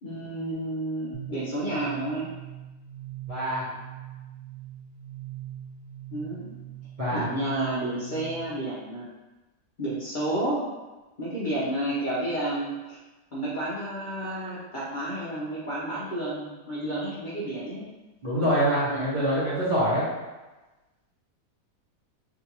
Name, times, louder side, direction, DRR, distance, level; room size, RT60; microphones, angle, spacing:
voice 1, 0.0-2.3 6.1-6.5 7.1-9.1 9.8-10.6 11.2-13.0 13.3-17.9 18.9-19.1, right 1 dB, 60° left, -9 dB, 0.5 m, -31 dB
sound 1, 1.1-8.7, right 11 dB, 75° right, 1.1 m, -42 dB
voice 2, 3.3-3.7 7.0-7.3 18.2-20.0, right 1 dB, 35° right, -10 dB, 0.8 m, -25 dB
3.7 x 2.4 x 2.9 m, 1.1 s
omnidirectional pair, 1.8 m